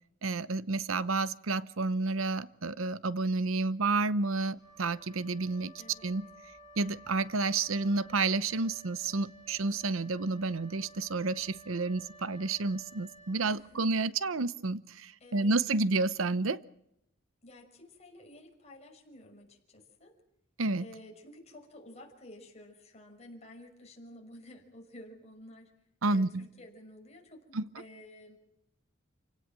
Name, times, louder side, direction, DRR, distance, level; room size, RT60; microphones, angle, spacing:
voice 1, 0.2-5.7 6.0-6.3 6.8-16.6 20.6-20.8 26.0-26.4 27.5-27.6, right 3 dB, 85° right, 0.8 m, -30 dB
Wind instrument woodwind instrument, 4.5-14.0, right 2 dB, 15° right, 7.4 m, -55 dB
voice 2, 5.8-6.2 13.5-13.8 15.2-15.8 17.4-20.1 20.8-25.7 26.1-28.4, left 1 dB, 35° left, 5.9 m, -52 dB
28.0 x 17.5 x 7.7 m
head